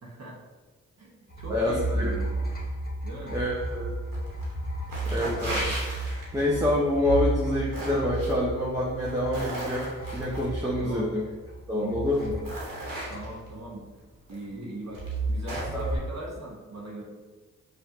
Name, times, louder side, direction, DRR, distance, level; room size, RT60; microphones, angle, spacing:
voice 1, 0.0-0.4 1.0-2.6 3.0-3.4 10.8-11.3 13.1-13.8 14.3-17.0, right 1 dB, 50° right, -2 dB, 1.0 m, -40 dB
sound 1, 1.3-11.6 11.9-13.7 14.9-16.0, right 2 dB, 25° left, 1.2 m, -33 dB
voice 2, 1.5-2.1 3.3-4.0 5.1-5.7 6.0-11.2 11.7-12.4 14.5-14.7 15.7-15.8, left 1 dB, 10° right, -7 dB, 0.9 m, -27 dB
sound 2, 4.1-4.5 4.8-6.6 7.3-8.3 8.9-10.5 11.5-11.6 12.1-13.5 14.3-14.4 14.9-15.8, right 1 dB, 75° right, 1.4 m, -36 dB
5.6 x 2.5 x 2.8 m, 1.3 s
cardioid pair, 45°, 34 cm